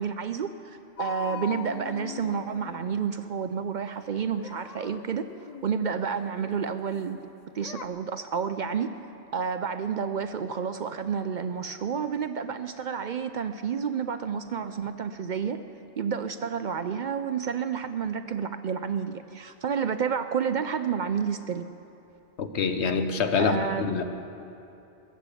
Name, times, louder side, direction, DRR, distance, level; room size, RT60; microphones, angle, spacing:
voice 1, 0.0-5.3 5.6-7.2 7.5-8.9 9.3-15.6 16.0-21.7 23.4-23.9, right 7 dB, 60° right, 9 dB, 0.5 m, -30 dB
sound 1, 1.0-3.4 4.1-7.1 7.6-7.9, left 8 dB, 55° left, 0.5 m, -42 dB
voice 2, 22.4-24.0, left 5 dB, 85° left, 8 dB, 1.2 m, -26 dB
20.0 x 7.5 x 8.2 m, 2.8 s
omnidirectional pair, 1.1 m